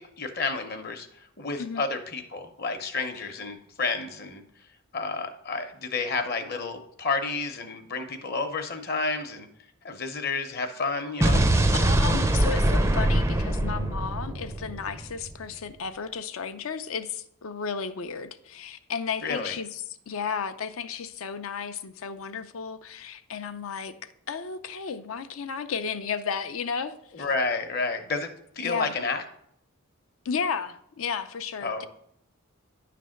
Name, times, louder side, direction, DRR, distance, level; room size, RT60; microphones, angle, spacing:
voice 1, 0.0-4.4 4.9-9.5 9.8-11.5 19.2-19.6 27.1-28.3 28.6-29.2 31.6-31.8, left 4 dB, 45° left, 0.8 m, -30 dB
Explosion, 11.2-15.3, right 1 dB, 15° right, 0.4 m, -23 dB
voice 2, 11.8-27.2 28.6-28.9 30.2-31.8, left 6 dB, 75° left, 0.5 m, -33 dB
10.0 x 3.4 x 6.3 m
head